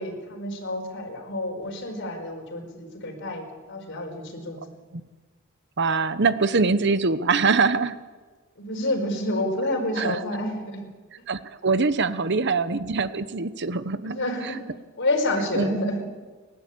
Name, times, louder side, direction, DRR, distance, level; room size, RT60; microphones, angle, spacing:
voice 1, 0.0-4.6 8.6-10.8 11.2-11.3 12.1-12.3 14.0-14.6 15.0-16.0, left 1 dB, 60° left, 2 dB, 4.9 m, -29 dB
voice 2, 5.8-8.0 10.0-10.2 11.3-14.5 15.5-15.8, right 4 dB, 55° right, 13 dB, 1.0 m, -23 dB
30.0 x 12.0 x 8.6 m, 1.4 s
head